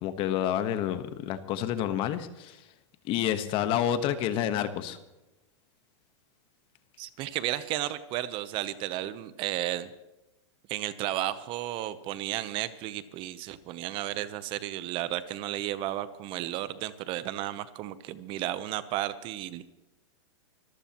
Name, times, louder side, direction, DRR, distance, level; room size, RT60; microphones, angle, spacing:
voice 1, 0.0-2.6 3.1-5.0, left 10 dB, 35° left, 11 dB, 1.2 m, -29 dB
voice 2, 7.0-9.9 10.7-19.6, right 13 dB, 35° right, 14 dB, 0.8 m, -33 dB
24.5 x 14.5 x 3.0 m, 0.99 s
hypercardioid pair, 145°, 15 cm